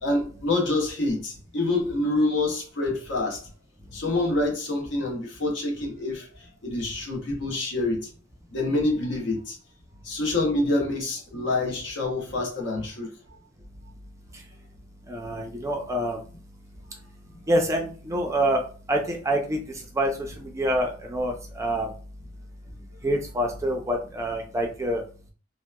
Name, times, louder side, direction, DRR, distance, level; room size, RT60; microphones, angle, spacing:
voice 1, 0.0-3.4 3.9-8.1 8.5-9.6 10.0-13.1, left 2 dB, 70° left, 0.8 m, -27 dB
voice 2, 15.1-16.2 17.5-18.6 18.9-19.6 19.9-20.1 20.4-21.9 23.0-25.0, right 1 dB, 15° right, 0.4 m, -26 dB
2.8 x 2.1 x 2.2 m
head